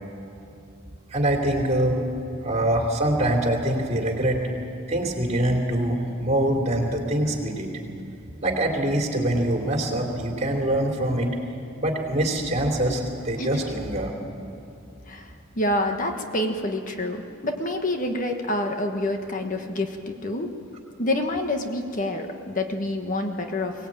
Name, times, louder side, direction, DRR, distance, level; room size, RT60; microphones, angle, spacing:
voice 1, 1.1-2.0 2.4-4.4 4.9-7.7 8.4-11.3 11.8-14.1, right 1 dB, 35° right, 2 dB, 3.2 m, -24 dB
voice 2, 15.1-20.5 21.0-23.9, left 1 dB, 40° left, 4 dB, 1.3 m, -27 dB
23.0 x 18.5 x 8.9 m, 2.7 s
head